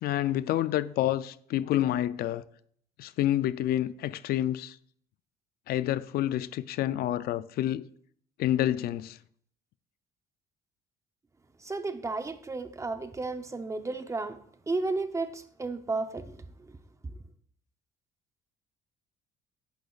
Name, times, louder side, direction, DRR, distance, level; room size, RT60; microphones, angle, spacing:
voice 1, 0.0-2.4 3.0-4.8 5.7-7.9 8.4-9.2, left 13 dB, 65° left, 0.4 m, -28 dB
voice 2, 11.6-14.4 14.7-16.8, right 3 dB, 15° right, 0.7 m, -33 dB
10.5 x 10.0 x 2.4 m
cardioid pair, 110°, 17 cm